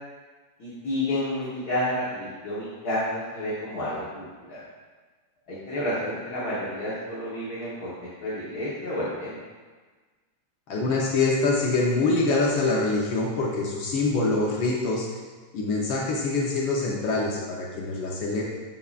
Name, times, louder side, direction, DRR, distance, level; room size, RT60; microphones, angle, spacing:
voice 1, 0.6-4.6 5.5-9.4, left 1 dB, 50° left, -9 dB, 1.2 m, -30 dB
voice 2, 10.7-15.1 15.5-18.4, left 3 dB, 90° left, -3 dB, 1.0 m, -25 dB
13.5 x 5.7 x 2.5 m, 1.4 s
omnidirectional pair, 3.6 m